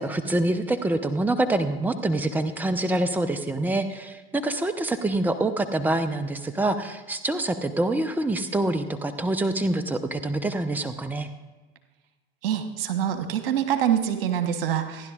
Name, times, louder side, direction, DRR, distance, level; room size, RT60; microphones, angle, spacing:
voice 1, 0.0-11.3, right 2 dB, 5° right, 10 dB, 0.7 m, -26 dB
voice 2, 12.4-15.1, right 9 dB, 70° right, 8 dB, 1.2 m, -25 dB
28.0 x 10.5 x 2.5 m, 1.3 s
figure-of-eight pair, 70°, 29 cm